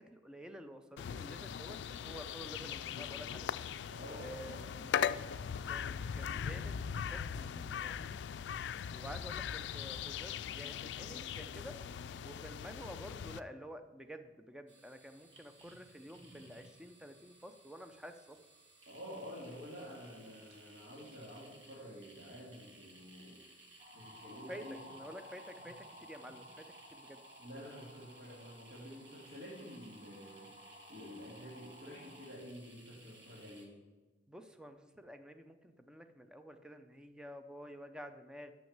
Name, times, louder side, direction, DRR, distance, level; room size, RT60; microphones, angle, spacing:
voice 1, 0.0-3.5 4.2-4.9 5.7-8.3 8.9-11.8 12.2-18.4 24.5-27.2 34.3-38.5, equal, 5° right, 7 dB, 0.5 m, -50 dB
sound 1, 1.0-13.4, left 8 dB, 80° left, 0.3 m, -40 dB
voice 2, 3.9-4.9 18.9-23.4 23.9-24.8 27.4-33.7, equal, 70° right, -7 dB, 2.4 m, -49 dB
sound 2, 14.7-33.7, right 2 dB, 90° right, 1.7 m, -60 dB
sound 3, 23.8-32.3, equal, 50° right, 1.2 m, -56 dB
6.3 x 6.2 x 7.2 m, 1.2 s
head